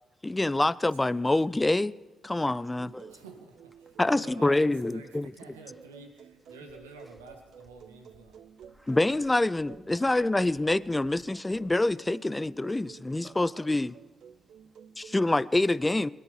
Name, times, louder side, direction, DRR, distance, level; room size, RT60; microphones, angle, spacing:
voice 1, 0.2-1.9 2.2-2.9 4.0-5.3 8.9-13.9 15.0-16.1, left 2 dB, 20° left, 0.5 m, -26 dB
voice 2, 2.5-3.3 5.7-5.8 6.5-6.6 7.0-7.2 8.3-9.3 12.7-13.7 14.3-15.0 15.4-15.5, equal, 5° right, 2.5 m, -56 dB
sound 1, 2.8-15.4, right 8 dB, 65° right, 0.6 m, -52 dB
voice 3, 3.1-8.4, right 3 dB, 90° right, 1.7 m, -49 dB
sound 2, 6.9-11.8, right 1 dB, 45° right, 2.9 m, -62 dB
21.5 x 10.0 x 5.6 m
hypercardioid pair, 40°, 0 cm